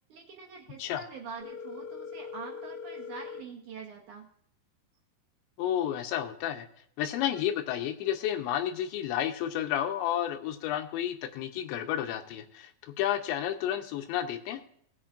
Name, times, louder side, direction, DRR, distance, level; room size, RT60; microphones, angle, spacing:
voice 1, 0.1-4.2, right 5 dB, 70° right, 1 dB, 1.9 m, -45 dB
Telephone, 1.4-3.4, left 6 dB, 60° left, 2.4 m, -41 dB
voice 2, 5.6-6.7 7.0-14.6, left 11 dB, 85° left, 5 dB, 3.1 m, -31 dB
20.0 x 7.9 x 2.5 m, 0.66 s
omnidirectional pair, 5.1 m